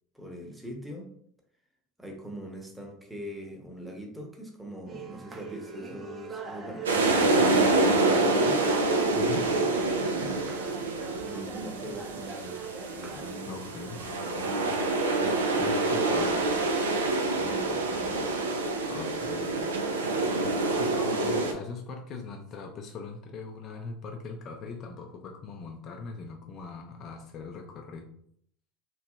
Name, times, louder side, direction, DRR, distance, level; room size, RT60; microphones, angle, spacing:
voice 1, 0.1-1.1 2.0-8.6 9.9-10.3 11.2-12.6 12.9-14.5 17.3-18.4, equal, 5° right, 1 dB, 0.9 m, -42 dB
sound 1, 4.9-16.0, right 4 dB, 35° right, 0.7 m, -42 dB
sound 2, 6.8-21.5, right 2 dB, 90° right, 0.4 m, -27 dB
voice 2, 9.1-9.5 13.5-14.1 15.6-16.4 18.9-20.0 20.7-28.1, left 4 dB, 45° left, 3 dB, 0.5 m, -40 dB
3.0 x 2.7 x 2.3 m, 0.65 s
hypercardioid pair, 80°, 0 cm